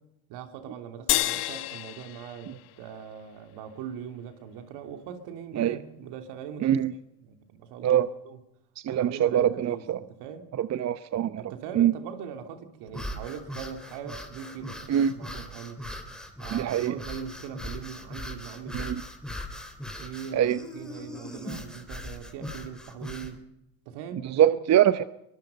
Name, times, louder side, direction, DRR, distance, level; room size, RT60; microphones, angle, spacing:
voice 1, 0.3-6.8 7.2-8.4 8.9-10.5 11.4-15.8 16.4-19.0 20.0-23.4 23.8-24.8, right 8 dB, 70° right, 6 dB, 3.2 m, -41 dB
sound 1, 1.1-3.7, left 16 dB, 65° left, 1.5 m, -31 dB
voice 2, 6.6-6.9 7.8-8.1 8.8-10.0 10.6-11.4 11.8-11.9 14.9-15.1 16.5-16.9 18.7-19.0 20.3-20.6 24.2-25.0, right 10 dB, 40° right, 13 dB, 0.8 m, -23 dB
sound 2, 12.9-23.4, left 1 dB, ahead, 3.7 m, -40 dB
24.0 x 20.0 x 5.4 m, 0.84 s
supercardioid pair, 90°, 42 cm